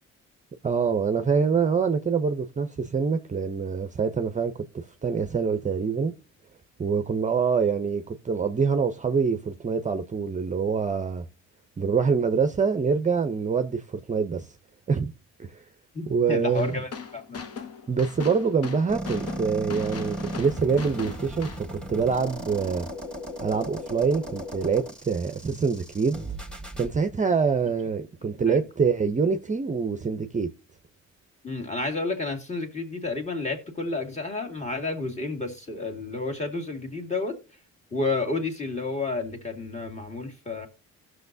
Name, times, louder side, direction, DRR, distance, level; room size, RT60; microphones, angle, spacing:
voice 1, 0.6-6.1 6.8-11.3 11.8-14.5 14.9-15.1 15.4-15.6 16.1-16.8 17.9-22.9 23.4-26.2 26.8-30.5, right 5 dB, 25° right, 0.6 m, -25 dB
voice 2, 15.9-17.4 28.5-28.6 31.4-37.3 37.9-40.7, left 3 dB, 25° left, 2.0 m, -31 dB
sound 1, 16.5-21.6, left 6 dB, 50° left, 1.0 m, -39 dB
sound 2, 18.9-26.9, right 1 dB, 5° left, 1.8 m, -36 dB
16.5 x 6.3 x 2.6 m
cardioid pair, 90°, 30 cm